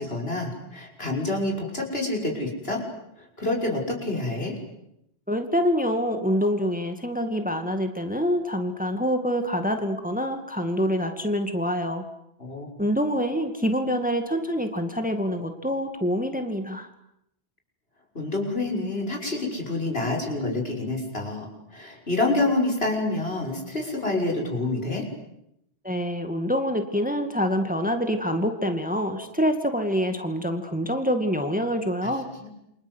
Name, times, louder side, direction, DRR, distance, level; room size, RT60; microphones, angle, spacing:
voice 1, 0.0-2.8 3.2-4.6 12.4-12.7 18.1-21.5 21.7-25.0 32.0-32.1 32.4-32.5, left 2 dB, 65° left, 0 dB, 6.5 m, -27 dB
voice 2, 5.3-12.0 12.8-16.9 25.8-32.3, equal, 5° right, 6 dB, 2.2 m, -26 dB
29.0 x 25.5 x 8.2 m, 0.81 s
omnidirectional pair, 1.1 m